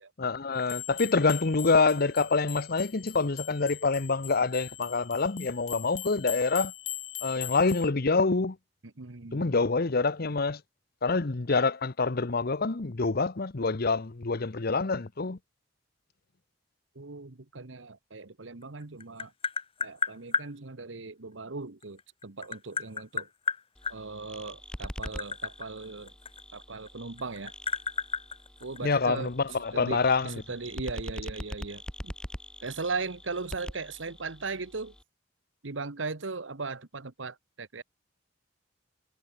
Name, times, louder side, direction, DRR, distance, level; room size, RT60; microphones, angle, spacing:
voice 1, 0.2-6.7 7.2-8.6 9.3-10.6 11.0-15.4 28.8-30.4, left 4 dB, 55° left, 0.9 m, -26 dB
sound 1, 0.6-7.9, left 14 dB, 80° left, 2.6 m, -41 dB
voice 2, 9.0-9.6 16.9-19.3 19.8-23.3 23.9-26.1 26.5-27.5 28.6-29.3 29.7-30.0 30.2-32.1 32.6-34.9 35.6-37.8, right 4 dB, 90° right, 1.3 m, -38 dB
Tap, 18.6-20.5 21.8-24.0 24.7-26.9 27.2-29.2, left 6 dB, 30° left, 1.0 m, -32 dB
sound 2, 23.7-35.0, equal, 5° left, 1.7 m, -44 dB
head